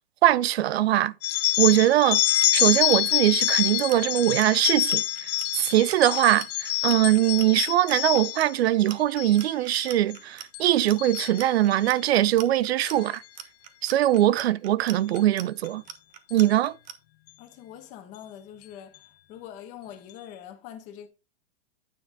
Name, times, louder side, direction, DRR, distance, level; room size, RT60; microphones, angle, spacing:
voice 1, 0.2-1.1 1.6-2.2 2.5-13.2 13.8-15.8 16.3-16.8, right 13 dB, 80° right, 0.6 m, -22 dB
sound 1, 1.2-8.5 9.0-9.4 9.7-10.1 10.5-11.9 12.8-13.1 14.0-14.2 15.2-15.3 15.6-15.7 16.3-16.5, left 17 dB, 40° left, 0.9 m, -26 dB
Clock, 2.1-16.9, right 9 dB, 45° right, 1.2 m, -42 dB
voice 2, 17.4-18.9 19.3-21.1, left 10 dB, 25° left, 1.2 m, -43 dB
9.4 x 5.9 x 3.8 m
supercardioid pair, 175°, 31 cm